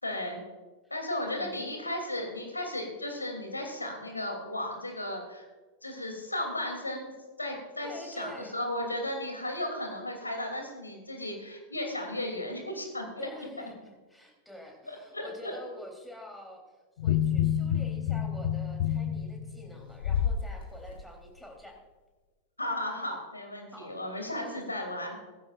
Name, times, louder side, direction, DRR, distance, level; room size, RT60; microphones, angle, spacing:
voice 1, 0.0-0.4 0.9-5.4 5.8-7.1 7.4-13.3 14.9-15.6 22.6-25.2, left 1 dB, 80° left, 3 dB, 2.9 m, -35 dB
voice 2, 1.2-1.7 7.8-8.6 13.2-16.6 17.0-21.8 23.7-23.9 24.3-24.6, left 1 dB, ahead, 0 dB, 3.5 m, -47 dB
sound 1, 17.0-20.4 20.9-21.0, left 9 dB, 60° left, 0.9 m, -28 dB
17.5 x 15.5 x 2.5 m, 1.3 s
figure-of-eight pair, 90°, 0 cm